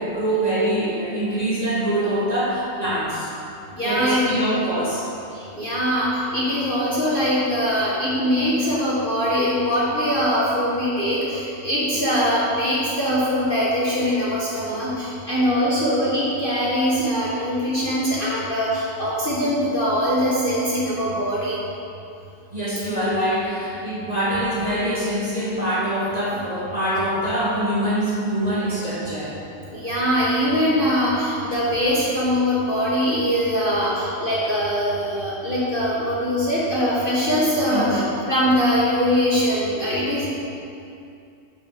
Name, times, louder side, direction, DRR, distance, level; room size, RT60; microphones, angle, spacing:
voice 1, 0.0-3.3 3.8-5.1 22.5-29.4 37.7-38.1, right 1 dB, 25° right, -8 dB, 2.0 m, -24 dB
voice 2, 3.7-4.5 5.3-21.6 29.7-40.3, equal, 30° left, -8 dB, 1.6 m, -22 dB
11.5 x 5.9 x 5.1 m, 2.6 s
omnidirectional pair, 1.9 m